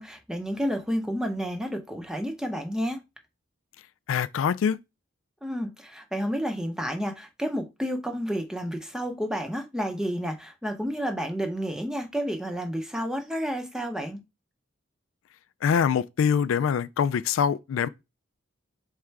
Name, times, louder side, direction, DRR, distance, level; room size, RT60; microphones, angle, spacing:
voice 1, 0.0-3.0 5.4-14.2, equal, 5° right, 0.7 m, -30 dB
voice 2, 4.1-4.8 15.6-17.9, left 7 dB, 75° left, 0.3 m, -24 dB
3.7 x 3.2 x 4.6 m
head